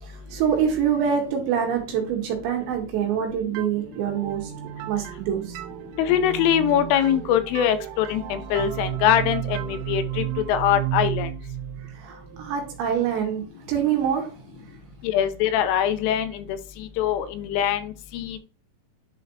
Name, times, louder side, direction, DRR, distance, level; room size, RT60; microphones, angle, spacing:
voice 1, 0.0-4.5 4.9-5.6 11.8-14.3, right 8 dB, 70° right, 1 dB, 3.2 m, -25 dB
sound 1, 3.6-13.1, right 17 dB, 85° right, 3.1 m, -33 dB
voice 2, 6.0-11.3 15.0-16.6 17.0-18.4, left 10 dB, 85° left, 10 dB, 3.1 m, -23 dB
10.5 x 4.2 x 2.7 m, 0.34 s
omnidirectional pair, 5.8 m